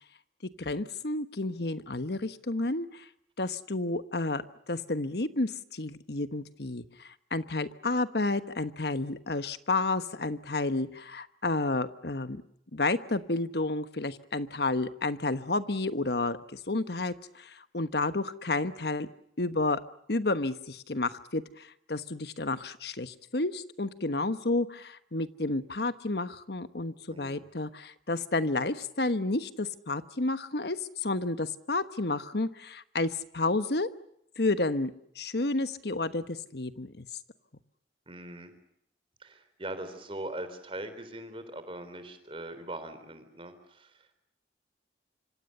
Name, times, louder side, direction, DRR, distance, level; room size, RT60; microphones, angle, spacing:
voice 1, 0.6-3.1 3.4-12.4 12.7-19.1 19.4-19.8 20.1-33.9 34.4-37.1, left 2 dB, 60° left, 12 dB, 1.2 m, -31 dB
voice 2, 27.1-27.5 38.1-38.5 39.2-44.2, right 1 dB, 30° right, 10 dB, 3.8 m, -41 dB
26.0 x 25.5 x 6.8 m, 0.75 s
head